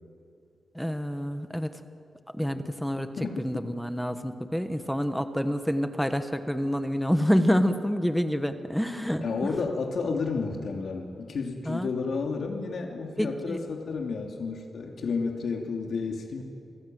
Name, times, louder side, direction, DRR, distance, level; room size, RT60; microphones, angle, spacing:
voice 1, 0.7-1.7 2.3-3.1 3.4-9.5 11.7-11.9 13.2-13.6, equal, ahead, 8 dB, 1.3 m, -27 dB
voice 2, 3.2-3.7 9.2-16.4, left 4 dB, 70° left, 2 dB, 2.9 m, -31 dB
29.0 x 19.5 x 9.3 m, 2.6 s
wide cardioid pair, 145°, 0 cm